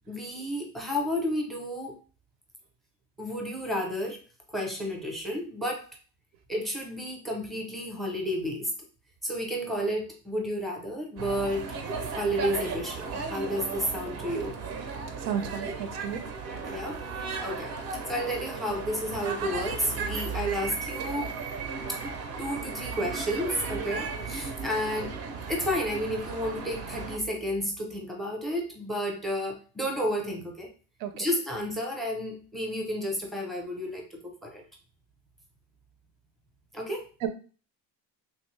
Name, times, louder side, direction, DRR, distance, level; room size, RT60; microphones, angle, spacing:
voice 1, 0.1-2.0 3.2-4.2 4.5-5.8 6.5-8.7 9.2-11.7 12.2-14.5 16.6-17.0 17.4-17.8 18.1-21.3 21.9-22.0 22.4-25.1 25.5-30.7 31.1-34.6 36.7-37.1, equal, ahead, 1 dB, 0.6 m, -31 dB
sound 1, 11.2-27.2, right 4 dB, 40° right, 0.5 m, -35 dB
voice 2, 15.1-16.2 31.0-31.3 37.2-37.3, right 9 dB, 85° right, 9 dB, 0.7 m, -33 dB
3.2 x 2.6 x 3.2 m, 0.37 s
cardioid pair, 145°, 38 cm